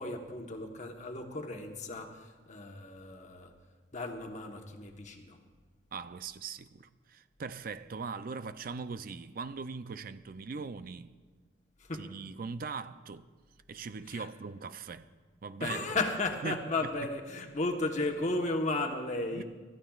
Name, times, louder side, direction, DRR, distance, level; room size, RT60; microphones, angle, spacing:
voice 1, 0.0-3.5 3.9-5.4 11.8-12.1 14.1-14.3 15.6-19.4, left 2 dB, 40° left, 1.1 m, -34 dB
voice 2, 5.9-11.1 12.0-13.3 13.7-15.1 15.4-15.9 16.4-16.6 19.4-19.5, right 5 dB, 50° right, 0.4 m, -40 dB
25.0 x 13.0 x 2.4 m
head